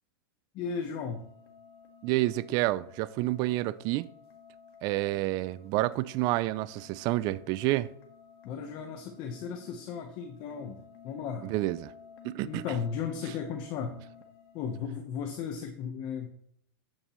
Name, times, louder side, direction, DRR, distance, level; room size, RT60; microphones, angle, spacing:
voice 1, 0.5-1.2 8.4-10.8 11.0-11.5 12.4-14.0 14.5-16.3, left 6 dB, 35° left, 1.0 m, -35 dB
sound 1, 0.6-14.8, left 7 dB, 75° left, 1.7 m, -54 dB
voice 2, 2.0-4.1 4.8-7.9 11.5-11.9 12.2-12.6, right 17 dB, 30° right, 0.4 m, -29 dB
11.0 x 9.0 x 3.1 m
supercardioid pair, 155°, 13 cm